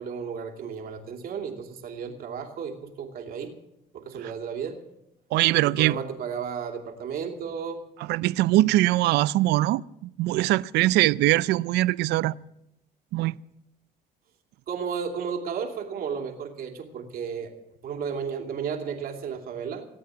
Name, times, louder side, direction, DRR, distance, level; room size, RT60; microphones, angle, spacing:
voice 1, 0.0-3.5 3.9-4.8 5.6-7.8 14.7-17.5 17.8-19.9, right 6 dB, 60° right, 2.7 m, -33 dB
voice 2, 5.3-5.9 8.1-12.4 13.1-13.4, right 17 dB, 80° right, 0.4 m, -22 dB
18.0 x 8.6 x 7.5 m
cardioid pair, 110°, 17 cm